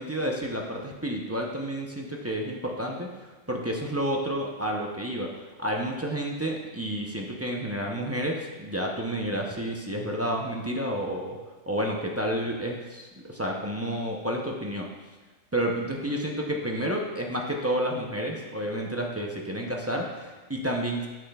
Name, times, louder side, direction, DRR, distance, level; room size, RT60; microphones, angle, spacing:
voice 1, 0.0-11.4 11.7-14.9 15.5-21.1, equal, 20° right, -1 dB, 0.4 m, -30 dB
9.8 x 6.0 x 2.3 m, 1.2 s
omnidirectional pair, 1.3 m